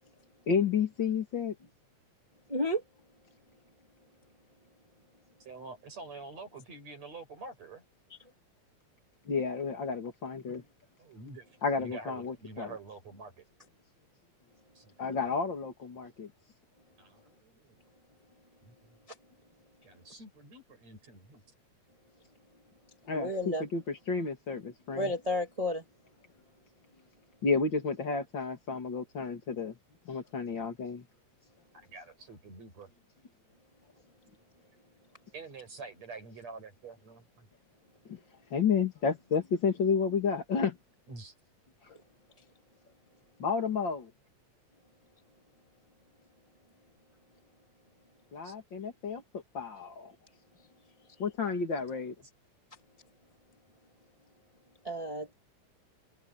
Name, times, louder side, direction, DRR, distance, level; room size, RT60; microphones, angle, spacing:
voice 1, 0.5-1.6 9.3-10.6 11.6-12.7 15.0-16.3 23.1-25.1 27.4-29.8 30.0-31.1 38.1-38.2 38.5-40.8 43.4-44.1 48.3-50.1 51.2-52.1, left 5 dB, 40° left, 2.8 m, -31 dB
voice 2, 2.5-2.8 23.1-23.6 24.9-25.8 54.8-55.3, left 1 dB, 10° right, 2.4 m, -32 dB
voice 3, 5.4-7.8 11.0-11.5 11.8-13.5 14.7-15.1 17.0-17.8 18.6-19.0 19.8-21.4 31.7-32.9 35.3-37.5 41.1-41.3 48.4-48.5, right 3 dB, 55° right, 8.3 m, -47 dB
omnidirectional pair, 3.6 m